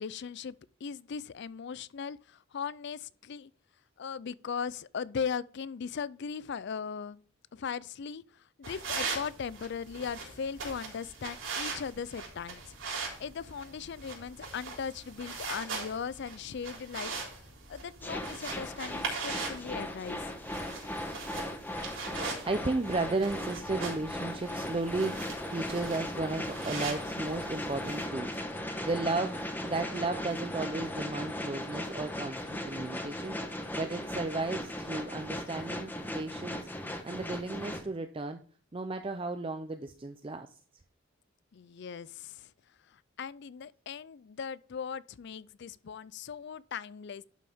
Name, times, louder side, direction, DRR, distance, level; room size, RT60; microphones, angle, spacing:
voice 1, 0.0-3.5 4.0-7.2 7.5-12.7 13.2-17.2 17.7-20.3 41.5-42.5 42.9-47.2, left 6 dB, 60° left, 0.4 m, -38 dB
sound 1, 8.6-28.1, right 4 dB, 80° right, 3.7 m, -41 dB
sound 2, 18.0-37.8, left 1 dB, 10° left, 1.1 m, -38 dB
voice 2, 22.5-36.6 37.0-38.4 38.7-40.5, right 3 dB, 25° right, 0.5 m, -34 dB
11.5 x 6.2 x 3.5 m
head